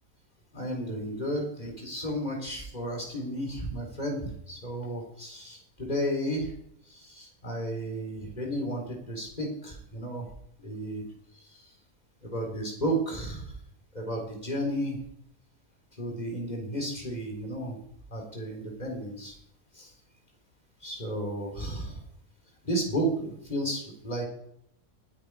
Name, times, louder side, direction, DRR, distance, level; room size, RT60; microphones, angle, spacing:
voice 1, 0.5-6.5 6.9-10.3 10.6-11.0 11.4-11.7 12.2-13.5 13.9-15.0 16.0-17.8 18.1-19.4 19.7-19.9 20.8-22.0 22.6-24.2, right 1 dB, 25° left, 1 dB, 4.1 m, -33 dB
19.5 x 9.4 x 4.9 m, 0.73 s
omnidirectional pair, 1.7 m